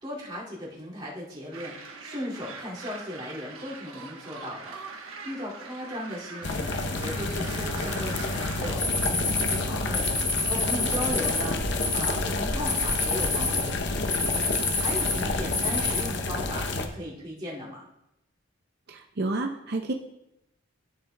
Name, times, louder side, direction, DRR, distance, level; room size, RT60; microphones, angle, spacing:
voice 1, 0.0-17.9, left 1 dB, 25° right, -8 dB, 2.4 m, -37 dB
sound 1, 1.5-8.8, right 4 dB, 80° right, 1.1 m, -42 dB
sound 2, 6.4-16.9, left 2 dB, 55° left, 0.7 m, -30 dB
sound 3, 8.8-16.0, left 3 dB, 20° left, 1.8 m, -29 dB
voice 2, 18.9-19.9, right 2 dB, 50° right, 3 dB, 0.5 m, -30 dB
13.0 x 7.0 x 2.2 m, 0.85 s
head